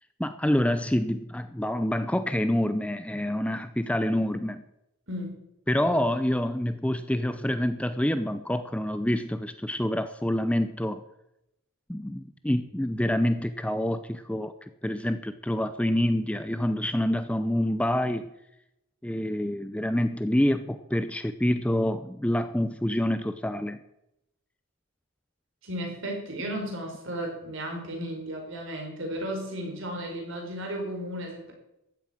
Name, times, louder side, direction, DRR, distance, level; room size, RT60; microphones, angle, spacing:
voice 1, 0.2-4.6 5.7-11.0 11.9-18.3 19.0-23.8, left 1 dB, 5° left, 11 dB, 0.5 m, -27 dB
voice 2, 5.1-5.4 25.6-31.5, equal, 60° right, 1 dB, 5.0 m, -34 dB
13.5 x 8.8 x 9.0 m, 0.85 s
head